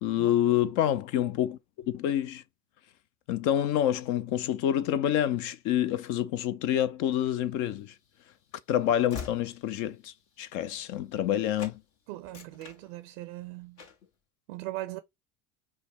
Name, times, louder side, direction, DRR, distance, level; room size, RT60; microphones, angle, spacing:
voice 1, 0.0-1.6 1.9-2.4 3.3-7.9 8.7-11.8, left 11 dB, 45° left, 0.5 m, -27 dB
Train / Slam, 7.7-11.3 11.6-11.8 12.2-13.4 13.8-14.1, left 6 dB, 65° left, 1.6 m, -46 dB
voice 2, 12.1-13.8 14.5-15.0, right 17 dB, 60° right, 0.5 m, -39 dB
5.6 x 2.1 x 3.2 m
hypercardioid pair, 70°, 44 cm